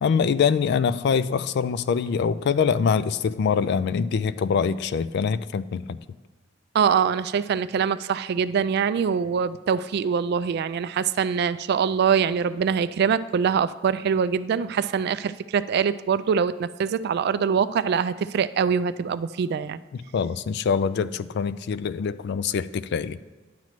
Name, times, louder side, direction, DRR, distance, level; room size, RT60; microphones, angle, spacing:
voice 1, 0.0-6.0 19.9-23.2, left 6 dB, 60° left, 15 dB, 0.3 m, -24 dB
voice 2, 6.7-19.8, right 7 dB, 55° right, 14 dB, 0.3 m, -24 dB
10.0 x 7.4 x 3.1 m, 1.3 s
head